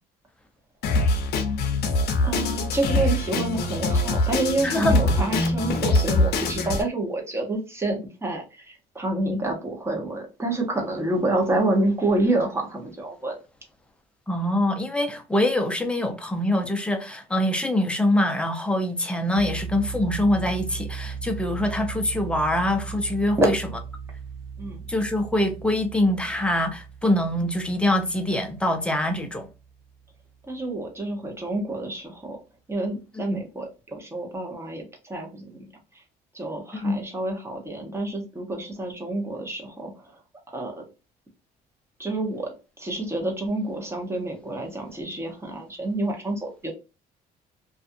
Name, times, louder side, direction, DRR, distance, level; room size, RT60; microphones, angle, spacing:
Drum kit, 0.8-6.8, left 2 dB, 70° left, 0.6 m, -23 dB
voice 1, 2.2-13.4 23.4-23.5 24.6-24.8 30.5-32.4 32.7-35.7 35.9-36.0 36.3-40.2 40.5-40.8 42.0-46.7, right 2 dB, 15° right, 0.9 m, -28 dB
voice 2, 4.6-5.3 14.3-23.6 24.9-29.5 33.3-33.4 36.8-37.0, left 1 dB, 5° left, 0.6 m, -24 dB
sound 1, 19.3-30.2, right 6 dB, 85° right, 0.7 m, -38 dB
2.5 x 2.3 x 2.5 m
cardioid pair, 110°, 17 cm